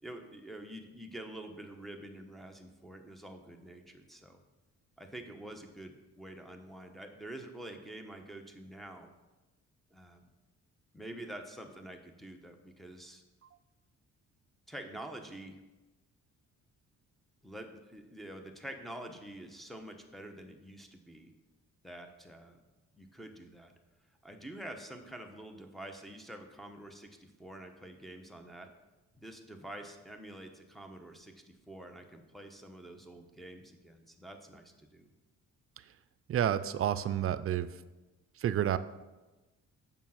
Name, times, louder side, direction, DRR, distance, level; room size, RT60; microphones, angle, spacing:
voice 1, 0.0-4.4 5.0-9.1 9.9-10.3 10.9-13.2 14.7-15.6 17.4-21.3 21.8-22.6 22.9-23.7 24.1-28.7 29.1-35.1, right 1 dB, ahead, 5 dB, 1.0 m, -47 dB
voice 2, 36.3-37.7 38.4-38.8, right 10 dB, 50° right, 14 dB, 0.5 m, -29 dB
7.3 x 5.3 x 5.7 m, 1.1 s
cardioid pair, 90°, 30 cm